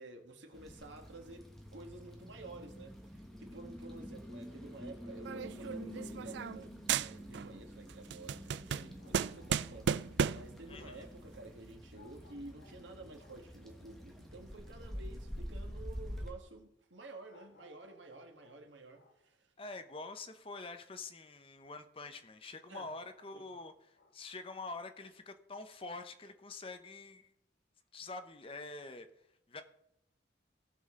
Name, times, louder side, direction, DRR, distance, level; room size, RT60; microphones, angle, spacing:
voice 1, 0.0-19.5 22.7-22.9 23.3-23.5, right 2 dB, 80° right, 1.7 m, -51 dB
sound 1, 0.5-16.3, equal, ahead, 1.3 m, -48 dB
sound 2, 5.2-6.6 6.9-7.6 7.9-10.6, right 7 dB, 65° right, 0.3 m, -34 dB
sound 3, 8.8-10.8 11.9-13.6 17.3-19.4 22.6-24.3, left 2 dB, 60° left, 1.4 m, -65 dB
voice 2, 10.7-11.1 19.6-27.3 27.9-29.1 29.5-29.6, left 3 dB, 30° left, 0.8 m, -46 dB
17.5 x 6.3 x 3.7 m
head